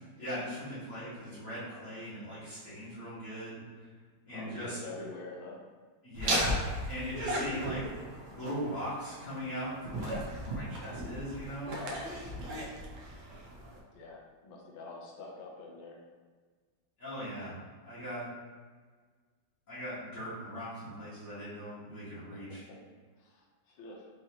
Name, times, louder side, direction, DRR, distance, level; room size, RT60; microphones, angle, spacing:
voice 1, 0.2-3.6 4.2-4.8 6.0-7.8 8.3-11.7 17.0-17.6 17.8-18.2 19.7-22.6, equal, 40° left, -13 dB, 1.7 m, -39 dB
voice 2, 1.5-1.8 4.3-5.6 11.7-12.2 13.9-16.0 22.3-22.8 23.2-24.1, left 3 dB, 75° left, -1 dB, 1.4 m, -46 dB
Laughter, 6.1-13.8, right 1 dB, 65° right, 1.1 m, -36 dB
5.1 x 2.7 x 2.8 m, 1.5 s
omnidirectional pair, 2.3 m